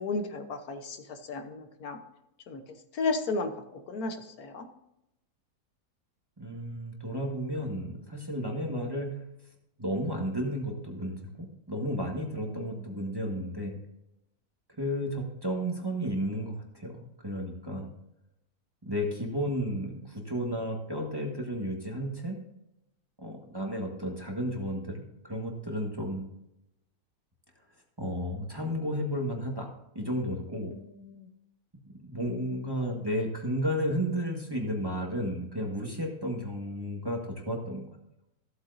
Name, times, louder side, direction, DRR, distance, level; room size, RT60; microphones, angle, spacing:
voice 1, 0.0-2.0 2.5-2.6 2.9-3.5 3.9-4.7 12.3-13.0 30.7-31.3, left 3 dB, 75° left, 6 dB, 1.5 m, -34 dB
voice 2, 6.4-9.3 9.8-13.8 14.8-17.9 18.8-22.4 23.2-26.2 28.0-29.7 29.9-30.7 32.0-37.9, equal, 15° right, 1 dB, 1.4 m, -33 dB
14.5 x 8.1 x 2.6 m, 0.85 s
omnidirectional pair, 1.6 m